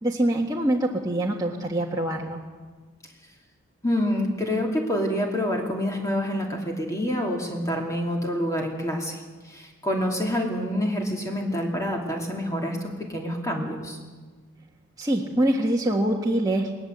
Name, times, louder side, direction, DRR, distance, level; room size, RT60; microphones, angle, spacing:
voice 1, 0.0-2.4 15.0-16.7, right 1 dB, 15° right, -2 dB, 1.6 m, -24 dB
voice 2, 3.8-14.0, equal, 15° left, 0 dB, 2.7 m, -27 dB
20.5 x 20.0 x 8.1 m, 1.4 s
head